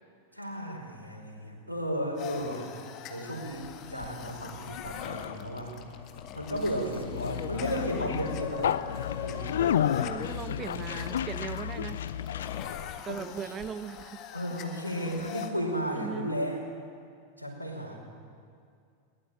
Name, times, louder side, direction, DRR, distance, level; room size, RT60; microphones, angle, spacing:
voice 1, 0.3-2.7 3.1-5.7 6.3-9.5 13.1-13.2 14.3-16.6 17.4-18.0, equal, 90° right, 1 dB, 5.1 m, -34 dB
sound 1, 2.2-15.5, left 8 dB, 35° left, 1.8 m, -41 dB
Conversation, 3.5-13.0, left 9 dB, 65° left, 0.7 m, -33 dB
voice 2, 9.9-12.0 13.0-14.2 16.0-16.3, right 7 dB, 25° right, 12 dB, 0.8 m, -39 dB
21.5 x 20.5 x 9.1 m, 2.3 s
figure-of-eight pair, 90°, 0 cm